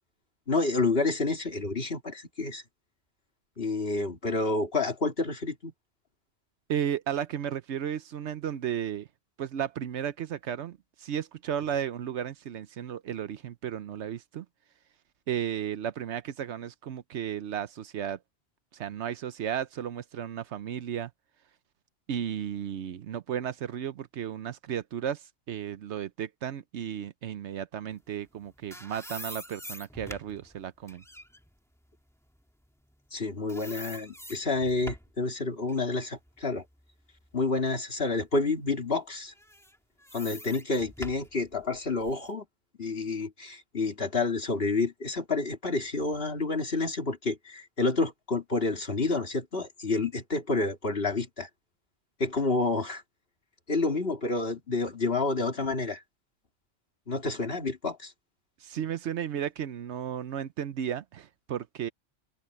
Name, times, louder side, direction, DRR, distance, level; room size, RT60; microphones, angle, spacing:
voice 1, 0.5-2.6 3.6-5.7 33.1-36.6 37.3-39.3 40.1-42.4 42.8-51.5 52.2-53.0 53.7-56.0 57.1-58.1, left 3 dB, 50° left, 2.8 m, -29 dB
voice 2, 6.7-9.1 9.4-14.5 15.3-18.2 18.7-21.1 22.1-31.0 58.6-61.9, right 9 dB, 70° right, 1.0 m, -34 dB
sound 1, 28.3-33.2 33.5-35.2 35.7-37.6 38.1-38.2 39.3-42.3, equal, ahead, 1.7 m, -46 dB
open air
omnidirectional pair, 1.2 m